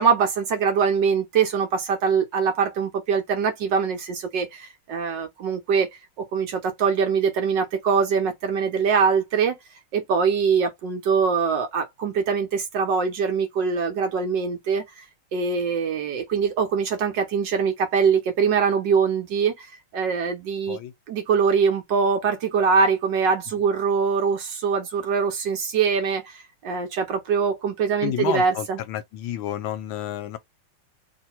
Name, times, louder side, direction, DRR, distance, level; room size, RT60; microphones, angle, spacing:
voice 1, 0.0-5.9 6.2-9.6 9.9-15.0 15.3-20.8 21.1-28.8, right 6 dB, 65° right, 1.3 m, -23 dB
voice 2, 28.0-30.4, left 12 dB, 75° left, 1.3 m, -30 dB
3.1 x 2.7 x 4.3 m
omnidirectional pair, 2.3 m